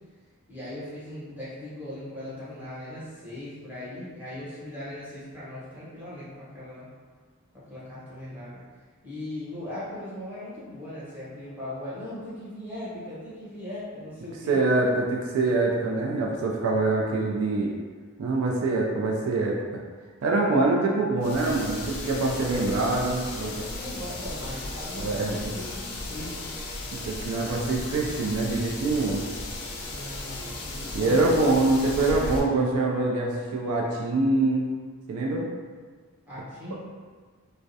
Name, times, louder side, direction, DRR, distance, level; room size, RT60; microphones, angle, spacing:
voice 1, 0.5-6.9 7.5-8.6 9.0-14.6 16.6-16.8 22.3-22.7 23.2-26.5 29.8-31.5 36.3-36.8, left 1 dB, 10° right, -12 dB, 0.8 m, -39 dB
voice 2, 14.5-17.7 18.2-19.8 20.2-23.5 25.0-25.5 26.9-29.2 30.9-34.7 35.1-35.5 36.7-36.8, right 2 dB, 70° right, -1 dB, 0.3 m, -24 dB
sound 1, 21.2-32.4, left 2 dB, 80° left, 0.4 m, -36 dB
2.3 x 2.0 x 2.6 m, 1.5 s
head